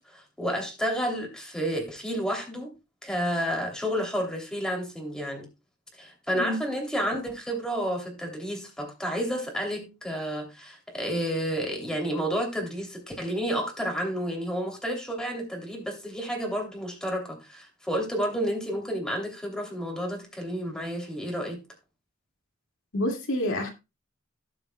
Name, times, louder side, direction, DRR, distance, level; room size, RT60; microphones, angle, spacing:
voice 1, 0.0-2.7 3.0-5.5 6.0-21.6, equal, 5° left, 2.9 m, -30 dB
voice 2, 22.9-23.7, left 1 dB, 75° left, 2.3 m, -28 dB
18.0 x 7.1 x 2.3 m
head